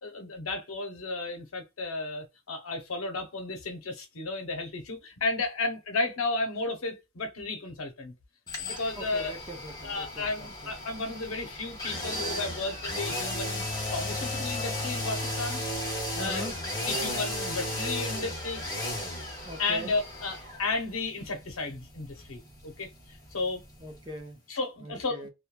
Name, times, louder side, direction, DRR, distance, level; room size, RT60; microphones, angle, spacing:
voice 1, 0.0-8.1 8.6-9.3 9.8-13.7 13.9-15.6 16.2-16.5 16.8-18.6 19.6-23.6 24.5-25.3, left 3 dB, 85° left, 0.7 m, -33 dB
sound 1, 8.5-24.3 24.6-24.7, left 1 dB, 20° left, 0.9 m, -35 dB
voice 2, 9.0-10.7 16.2-16.6 19.4-19.9 23.8-24.4 24.8-25.3, right 1 dB, 20° right, 0.6 m, -42 dB
3.0 x 2.2 x 2.2 m
head